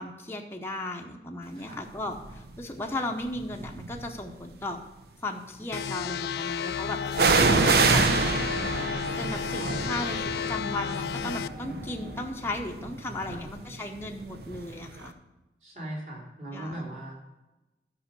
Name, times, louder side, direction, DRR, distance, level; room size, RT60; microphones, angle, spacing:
voice 1, 0.0-4.8 5.2-7.0 7.4-8.0 9.2-15.1 16.5-16.8, left 1 dB, 15° left, 1 dB, 0.8 m, -36 dB
voice 2, 1.5-1.8 13.3-13.5 15.6-17.2, right 1 dB, 40° right, -2 dB, 3.1 m, -40 dB
sound 1, 2.2-2.5 3.3-4.2 7.1-14.8 15.0-15.1, right 4 dB, 60° right, 0.7 m, -27 dB
sound 2, 5.7-11.5, left 7 dB, 65° left, 0.3 m, -32 dB
sound 3, 7.0-12.2, left 1 dB, 5° right, 1.7 m, -44 dB
11.5 x 5.5 x 6.7 m, 1.0 s
head